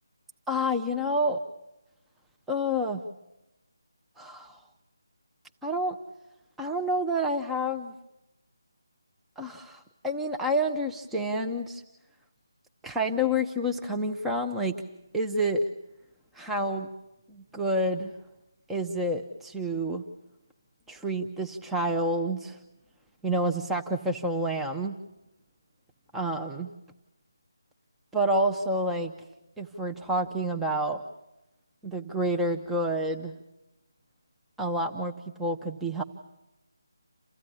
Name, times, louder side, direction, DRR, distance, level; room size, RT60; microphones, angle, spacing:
voice 1, 0.5-1.4 2.5-3.0 4.2-4.6 5.6-6.0 6.6-7.9 9.4-11.8 12.8-14.7 15.1-15.6 16.3-16.9 17.3-18.1 18.7-20.0 20.9-22.6 23.2-25.0 26.1-26.7 28.1-29.1 29.6-31.0 31.8-33.3 34.6-35.1 35.4-36.0, equal, 5° right, 2 dB, 0.8 m, -28 dB
29.0 x 14.5 x 9.9 m, 0.93 s
figure-of-eight pair, 165°, 2 cm